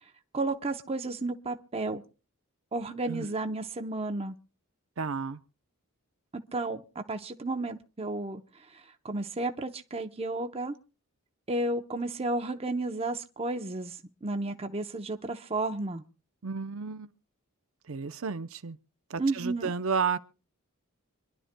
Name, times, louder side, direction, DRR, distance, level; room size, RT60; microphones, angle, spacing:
voice 1, 0.3-2.0 2.7-4.3 6.5-10.7 11.5-16.0 19.2-19.7, right 2 dB, 25° right, 0.7 m, -32 dB
voice 2, 5.0-5.4 16.4-17.1 17.9-18.8 19.1-20.2, right 5 dB, 65° right, 0.7 m, -32 dB
26.0 x 11.5 x 2.2 m
head